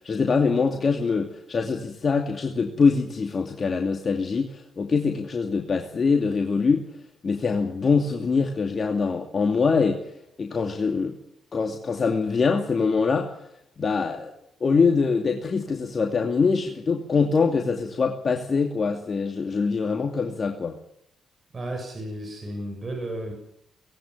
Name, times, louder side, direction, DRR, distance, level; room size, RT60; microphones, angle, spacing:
voice 1, 0.0-6.9 7.2-10.0 10.4-11.2 11.5-13.3 13.8-14.3 14.6-20.8, left 4 dB, 50° left, 3 dB, 2.6 m, -24 dB
voice 2, 21.5-23.3, right 1 dB, 40° right, 3 dB, 6.7 m, -33 dB
19.5 x 16.5 x 9.9 m, 0.77 s
supercardioid pair, 50°, 0 cm